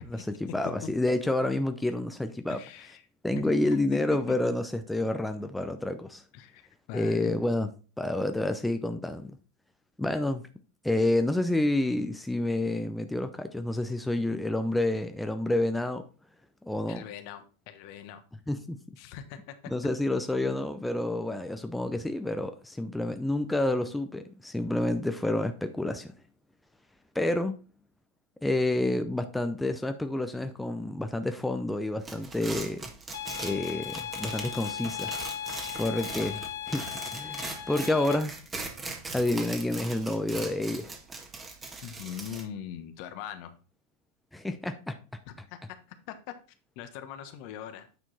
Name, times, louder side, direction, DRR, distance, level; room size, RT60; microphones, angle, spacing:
voice 1, 0.0-2.6 3.2-6.2 6.9-7.7 8.0-9.4 10.0-10.4 10.8-16.1 16.6-17.0 18.5-18.8 19.7-26.1 27.1-27.6 28.4-32.9 33.4-35.2 35.7-38.4 39.1-40.9 44.3-45.0, left 1 dB, 5° left, 0.7 m, -29 dB
voice 2, 2.5-3.0 3.4-4.0 6.3-6.6 6.9-7.3 16.9-18.2 19.0-19.5 41.8-43.6 46.1-46.2 46.8-47.9, left 9 dB, 55° left, 1.1 m, -41 dB
sound 1, 32.0-42.4, right 3 dB, 20° right, 1.6 m, -40 dB
sound 2, 33.1-38.2, left 10 dB, 70° left, 1.5 m, -37 dB
9.2 x 4.5 x 4.1 m
hypercardioid pair, 95°, 0 cm